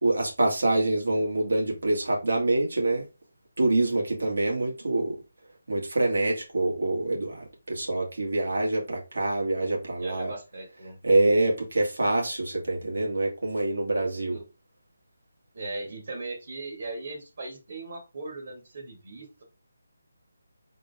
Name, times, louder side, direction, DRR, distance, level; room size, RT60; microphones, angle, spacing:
voice 1, 0.0-3.0 3.6-5.2 5.7-10.3 11.0-14.4, right 2 dB, 80° right, 2.0 m, -25 dB
voice 2, 10.0-11.0 14.3-14.4 15.5-19.4, right 2 dB, 45° right, 1.6 m, -38 dB
3.8 x 3.7 x 3.4 m
hypercardioid pair, 175°, 0 cm